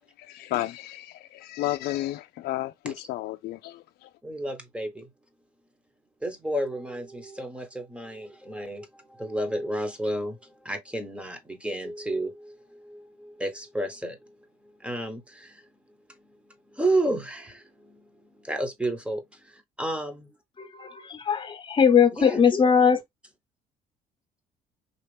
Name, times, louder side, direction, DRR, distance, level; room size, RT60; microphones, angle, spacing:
voice 1, 0.2-4.1, left 15 dB, 70° left, 0.4 m, -32 dB
voice 2, 4.2-5.1 6.2-14.2 14.8-15.6 16.7-18.1 18.4-20.3 22.1-22.4, right 1 dB, 5° right, 1.1 m, -31 dB
voice 3, 20.6-23.0, left 6 dB, 30° left, 1.0 m, -20 dB
4.0 x 2.9 x 3.3 m
cardioid pair, 110°, 17 cm